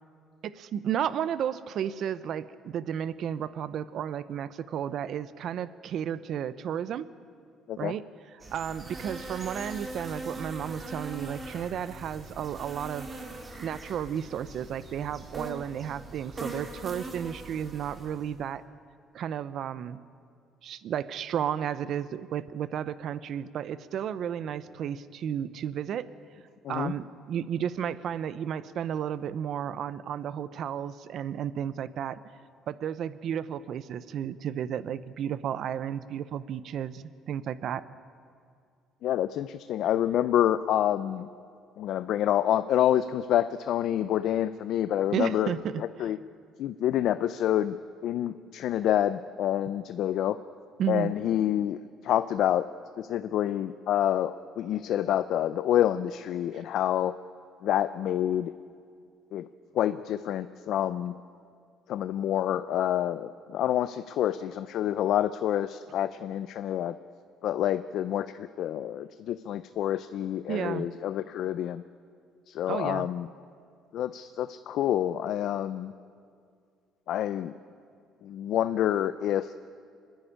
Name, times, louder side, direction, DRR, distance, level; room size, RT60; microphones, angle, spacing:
voice 1, 0.4-7.1 7.8-8.0 8.5-13.1 13.6-18.6 19.1-20.0 20.6-26.1 26.7-32.2 32.7-37.8 45.1-46.1 50.8-51.1 70.5-70.9 72.7-73.1, right 9 dB, 50° right, 16 dB, 0.7 m, -33 dB
sound 1, 8.4-18.4, right 2 dB, 20° right, 2.0 m, -41 dB
voice 2, 39.0-41.3 41.8-45.5 45.8-46.2 46.6-47.8 48.0-50.4 50.9-52.6 53.0-57.1 57.6-58.5 59.3-59.5 59.7-61.2 61.9-67.0 67.4-71.8 72.5-73.3 73.9-75.9 77.1-77.5 78.2-79.5, left 11 dB, 60° left, 13 dB, 0.5 m, -27 dB
26.0 x 10.5 x 10.0 m, 2.3 s
cardioid pair, 160°, 0 cm